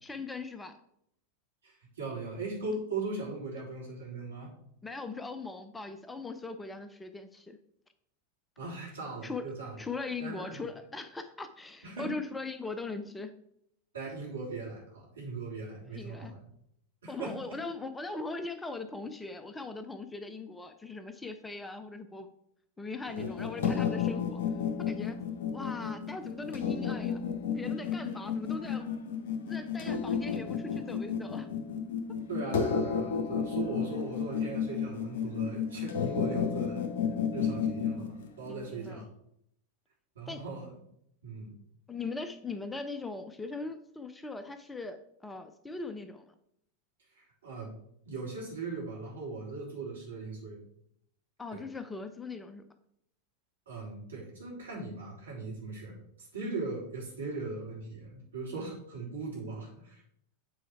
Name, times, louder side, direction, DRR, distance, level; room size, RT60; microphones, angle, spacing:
voice 1, 0.0-0.7 4.8-7.6 9.2-9.4 9.8-13.4 15.9-16.4 17.1-22.3 22.8-24.4 24.8-25.2 25.5-27.2 27.5-28.9 29.5-31.5 38.5-39.0 40.3-40.4 41.9-46.3 51.4-52.6, left 3 dB, 10° left, 9 dB, 0.6 m, -40 dB
voice 2, 1.6-4.5 8.6-9.8 10.2-10.4 11.8-12.1 13.9-16.4 17.0-17.3 32.3-36.8 37.3-39.0 40.1-40.8 41.2-41.6 47.1-47.7 48.0-50.6 51.5-51.6 53.6-60.0, right 3 dB, 70° right, -4 dB, 3.4 m, -39 dB
sound 1, 23.1-38.9, left 7 dB, 55° left, 1.1 m, -32 dB
8.4 x 4.5 x 4.7 m, 0.73 s
figure-of-eight pair, 90°, 0 cm